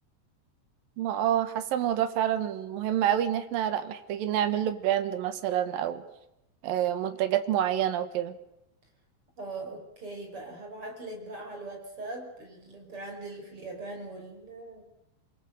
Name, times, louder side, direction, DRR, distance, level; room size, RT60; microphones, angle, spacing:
voice 1, 1.0-6.0 6.6-8.3, right 11 dB, 60° right, 10 dB, 2.8 m, -27 dB
voice 2, 9.4-14.8, right 2 dB, 30° right, 3 dB, 6.1 m, -41 dB
28.0 x 23.0 x 6.7 m, 0.87 s
omnidirectional pair, 5.4 m